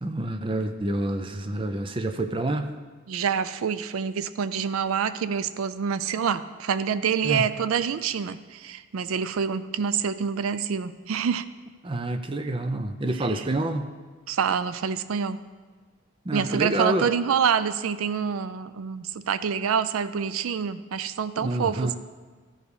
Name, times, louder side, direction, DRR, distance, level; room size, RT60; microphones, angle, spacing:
voice 1, 0.0-2.7 7.2-7.5 11.8-13.9 16.2-17.1 21.4-21.9, right 1 dB, 25° right, 7 dB, 0.5 m, -28 dB
voice 2, 3.1-11.5 13.2-13.4 14.3-15.4 16.3-21.9, right 7 dB, 90° right, 14 dB, 0.4 m, -27 dB
14.5 x 5.1 x 4.8 m, 1.5 s
head